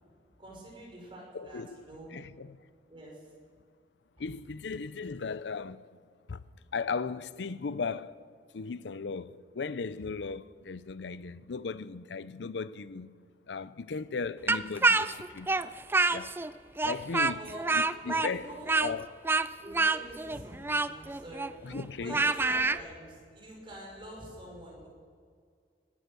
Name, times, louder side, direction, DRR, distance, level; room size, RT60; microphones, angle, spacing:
voice 1, 0.4-1.6 1.9-2.1 2.9-3.2 17.3-17.6 18.0-18.7 19.6-24.9, right 1 dB, 30° right, 5.2 m, -46 dB
voice 2, 1.3-1.8 2.1-2.6 4.2-5.8 6.3-6.4 6.7-8.2 8.5-13.1 13.5-15.5 16.1-16.3 16.8-17.5 17.7-19.2 21.6-22.6, left 4 dB, 85° left, 0.5 m, -37 dB
Speech, 14.5-16.5 16.8-22.8, right 3 dB, 15° right, 0.3 m, -27 dB
19.0 x 10.0 x 6.8 m
head